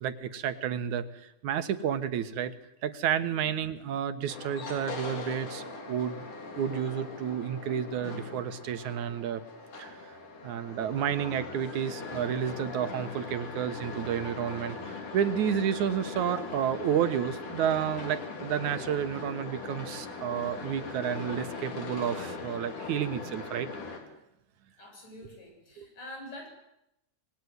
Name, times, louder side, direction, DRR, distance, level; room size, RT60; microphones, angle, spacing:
voice 1, 0.0-2.5 2.8-6.2 6.6-9.4 9.8-10.2 10.4-23.7 25.8-25.9, right 9 dB, 75° right, 11 dB, 2.7 m, -31 dB
sound 1, 4.3-24.0, left 3 dB, 85° left, 5.1 m, -40 dB
voice 2, 24.8-26.5, left 1 dB, 70° left, 1 dB, 9.5 m, -45 dB
26.0 x 20.5 x 9.6 m, 0.84 s
omnidirectional pair, 3.5 m